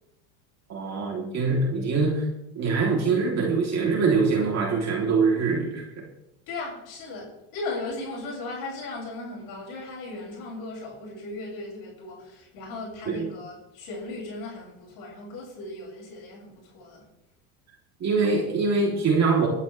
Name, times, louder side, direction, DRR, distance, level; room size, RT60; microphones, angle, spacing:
voice 1, 0.7-2.3 2.6-5.9 13.1-13.3 18.0-19.5, right 4 dB, 45° right, -1 dB, 3.4 m, -23 dB
voice 2, 6.5-17.1, left 2 dB, 70° left, -3 dB, 6.7 m, -37 dB
20.5 x 11.0 x 3.4 m, 0.87 s
supercardioid pair, 100°, 38 cm